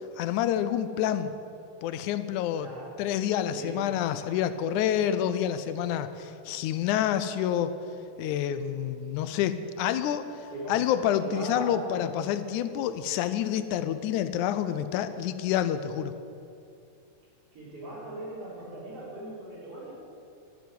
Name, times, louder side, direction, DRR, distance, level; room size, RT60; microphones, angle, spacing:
voice 1, 0.2-1.3 1.8-2.7 3.0-7.7 8.2-10.3 10.7-16.1, left 10 dB, 85° left, 11 dB, 2.1 m, -28 dB
voice 2, 2.6-2.9 3.5-3.8 10.5-10.8 11.2-12.0 17.5-19.9, right 1 dB, 50° right, -6 dB, 4.7 m, -39 dB
12.0 x 7.0 x 9.3 m, 2.5 s
omnidirectional pair, 3.4 m